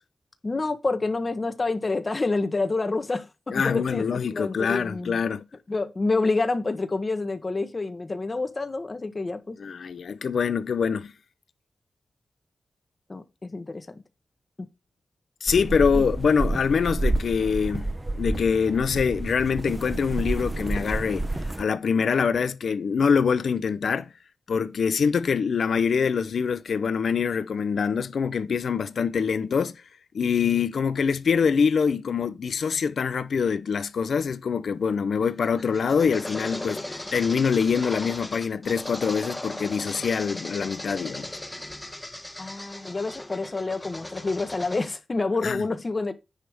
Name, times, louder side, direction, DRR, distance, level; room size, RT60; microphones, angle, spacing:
voice 1, 0.4-4.1 4.3-5.2 5.7-9.6 13.1-14.0 15.9-16.0 42.4-46.1, left 3 dB, 40° left, 1.4 m, -28 dB
voice 2, 3.5-5.4 9.6-11.1 15.4-17.9 18.2-21.3 21.6-24.1 24.5-29.8 30.1-41.3 45.4-45.6, left 6 dB, 80° left, 0.6 m, -24 dB
sound 1, 15.5-21.6, right 2 dB, 20° right, 0.8 m, -29 dB
sound 2, 35.2-44.9, left 1 dB, 15° left, 1.3 m, -37 dB
9.8 x 3.4 x 6.1 m
cardioid pair, 70°, 0 cm